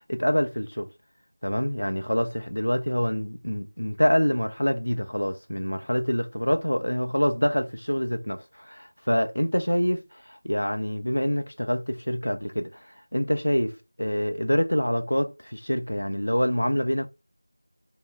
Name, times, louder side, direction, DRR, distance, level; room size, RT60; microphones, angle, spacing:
voice 1, 0.1-0.9 1.4-17.1, equal, 85° left, 0.6 m, -26 dB
3.5 x 2.3 x 3.5 m
figure-of-eight pair, 175°, 0 cm